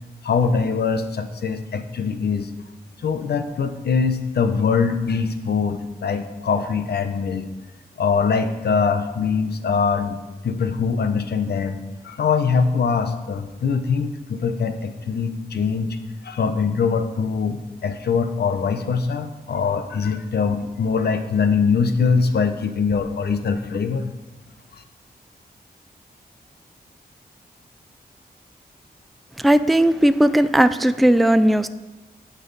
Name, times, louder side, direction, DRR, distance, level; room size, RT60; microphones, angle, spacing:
voice 1, 0.2-2.5 3.0-7.5 8.0-10.2 10.4-11.8 12.0-16.0 16.2-24.1, left 5 dB, 80° left, 8 dB, 0.9 m, -22 dB
voice 2, 29.4-31.7, right 1 dB, ahead, 12 dB, 0.3 m, -17 dB
17.0 x 5.8 x 4.1 m, 1.1 s
wide cardioid pair, 135°, 17 cm